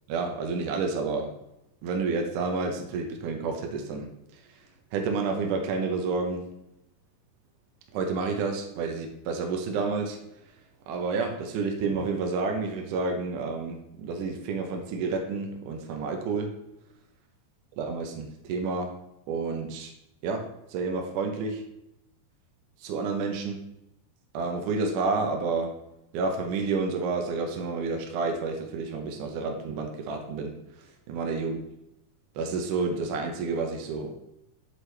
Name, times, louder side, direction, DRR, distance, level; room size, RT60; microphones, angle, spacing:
voice 1, 0.1-1.3 1.8-4.1 4.5-4.6 4.9-6.4 7.9-10.2 10.9-16.5 17.8-18.9 19.3-19.9 20.2-21.6 22.8-23.6 24.3-25.7 26.1-30.5 31.1-31.6 32.4-34.1, right 4 dB, 70° right, 3 dB, 2.0 m, -30 dB
7.2 x 6.6 x 3.3 m, 0.84 s
omnidirectional pair, 4.5 m